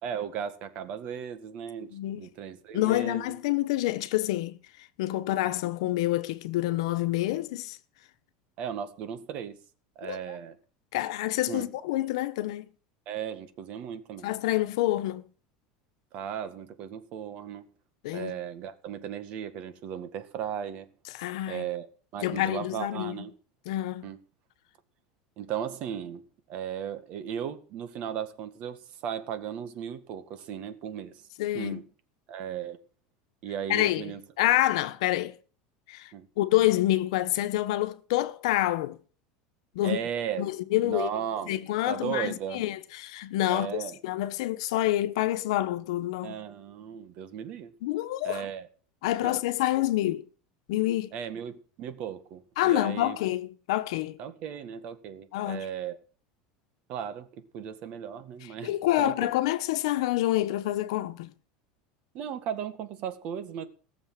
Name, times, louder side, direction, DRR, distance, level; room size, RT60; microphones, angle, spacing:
voice 1, 0.0-3.4 5.5-5.6 8.6-9.6 10.0-10.6 11.5-11.7 13.1-14.3 16.1-17.7 18.1-20.9 21.5-21.9 22.1-23.3 24.0-24.2 25.4-26.2 26.5-31.3 31.5-31.9 32.3-32.8 33.4-34.2 36.1-36.3 39.8-40.4 40.8-41.6 41.9-42.6 43.5-44.0 46.2-47.7 48.2-48.7 49.2-49.4 51.1-53.2 54.2-56.0 56.9-59.3 62.1-63.7, right 8 dB, 40° right, 1.8 m, -36 dB
voice 2, 1.9-2.3 2.7-4.6 5.0-7.8 10.0-10.2 10.9-12.7 14.2-15.3 18.0-18.3 21.1-21.7 22.2-23.2 23.7-24.1 31.4-31.8 33.7-34.0 34.4-35.4 35.9-36.1 36.4-39.0 39.7-40.0 40.4-41.1 41.5-46.4 47.8-48.4 49.0-50.2 50.7-51.1 52.6-54.2 55.3-55.6 58.6-61.3, left 15 dB, 75° left, 1.2 m, -27 dB
18.5 x 7.1 x 7.5 m
cardioid pair, 165°, 3 cm